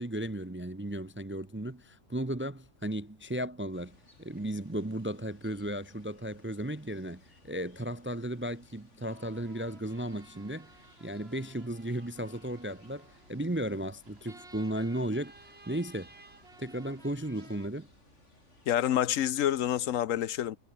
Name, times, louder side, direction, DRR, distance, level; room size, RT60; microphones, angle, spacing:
voice 1, 0.0-10.7 11.0-15.3 15.7-16.1 16.6-17.9, right 1 dB, 15° right, 0.5 m, -35 dB
sound 1, 3.7-18.8, left 2 dB, 65° left, 5.7 m, -63 dB
sound 2, 9.1-17.7, right 3 dB, 50° right, 3.3 m, -56 dB
voice 2, 18.7-20.6, left 11 dB, 80° left, 1.1 m, -28 dB
omnidirectional pair, 1.3 m